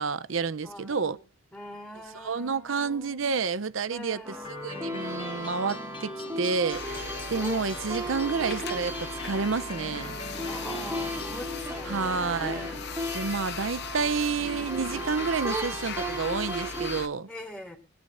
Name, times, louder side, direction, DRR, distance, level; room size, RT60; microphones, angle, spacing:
voice 1, 0.0-1.2 2.2-4.2 4.6-10.1 11.9-12.7 13.1-17.3, right 5 dB, 80° right, 0.7 m, -29 dB
voice 2, 0.6-3.2 3.9-4.5 8.0-9.0 10.4-12.8 13.9-15.2 17.3-17.8, left 1 dB, 5° left, 3.7 m, -44 dB
sound 1, 4.2-17.0, right 1 dB, 15° right, 1.9 m, -36 dB
sound 2, 4.4-11.4, left 1 dB, 25° left, 1.2 m, -42 dB
sound 3, 6.7-17.1, left 5 dB, 60° left, 0.9 m, -39 dB
25.0 x 9.8 x 2.6 m
head